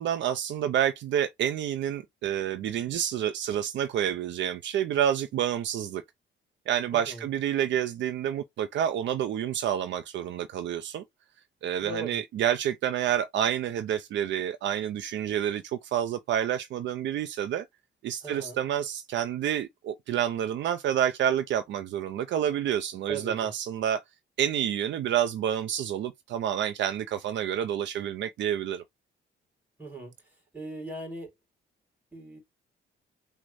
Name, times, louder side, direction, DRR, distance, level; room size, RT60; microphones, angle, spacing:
voice 1, 0.0-6.0 6.7-11.0 11.6-17.6 18.0-24.0 24.4-28.8, right 10 dB, 70° right, 0.4 m, -28 dB
voice 2, 6.9-7.3 11.8-12.2 18.2-18.6 23.1-23.5 29.8-30.1 30.5-31.3 32.1-32.4, right 3 dB, 10° right, 2.4 m, -38 dB
6.0 x 2.1 x 2.5 m
cardioid pair, 90°, 20 cm